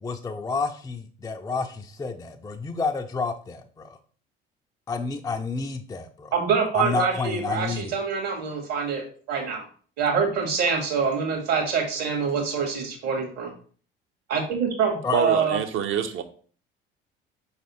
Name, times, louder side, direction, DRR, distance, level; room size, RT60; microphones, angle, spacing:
voice 1, 0.0-4.0 4.9-6.3 6.7-7.9 15.0-15.3, left 4 dB, 10° left, 4 dB, 0.4 m, -30 dB
voice 2, 6.3-9.0 9.3-9.6 10.0-13.5 14.3-15.6, right 6 dB, 60° right, 2 dB, 1.7 m, -25 dB
voice 3, 15.1-16.2, right 7 dB, 45° right, 9 dB, 0.7 m, -26 dB
5.2 x 3.3 x 3.0 m, 0.43 s
hypercardioid pair, 60°, 29 cm